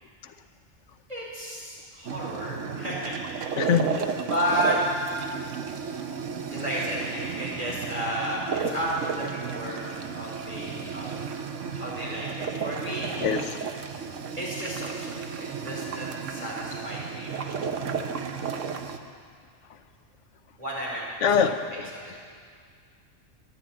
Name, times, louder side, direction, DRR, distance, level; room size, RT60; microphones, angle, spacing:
voice 1, 1.1-3.7 4.3-4.8 6.5-11.2 11.7-13.1 14.4-17.9 20.6-21.0 21.9-22.2, equal, 30° right, -7 dB, 4.6 m, -32 dB
sound 1, 2.0-19.0, right 6 dB, 80° right, 1.2 m, -33 dB
voice 2, 3.6-4.2 13.2-13.7 21.2-21.9, left 7 dB, 75° left, 8 dB, 1.1 m, -24 dB
12.5 x 11.0 x 8.8 m, 2.1 s
omnidirectional pair, 1.3 m